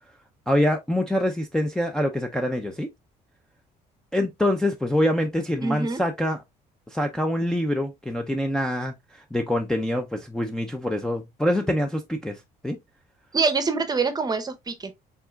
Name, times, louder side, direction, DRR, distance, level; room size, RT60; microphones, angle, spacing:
voice 1, 0.5-2.9 4.1-6.4 6.9-12.8, left 1 dB, 5° left, 0.5 m, -25 dB
voice 2, 5.6-6.0 13.3-14.9, right 4 dB, 25° right, 0.8 m, -25 dB
4.6 x 3.8 x 2.3 m
cardioid pair, 110°, 17 cm